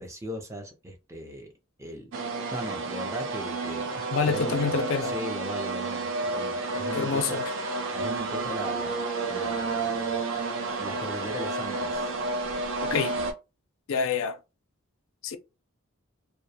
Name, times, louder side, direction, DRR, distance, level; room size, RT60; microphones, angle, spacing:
voice 1, 0.0-1.5 1.8-2.1 2.5-4.0 4.3-4.7 5.0-7.4 7.9-10.2 10.8-12.1, equal, 15° right, 0.5 m, -38 dB
sound 1, 2.1-13.3, right 3 dB, 60° right, 0.5 m, -31 dB
voice 2, 4.1-5.1 6.9-7.4 12.8-13.2 13.9-14.4 15.2-15.4, left 5 dB, 60° left, 0.4 m, -27 dB
2.3 x 2.1 x 2.8 m
head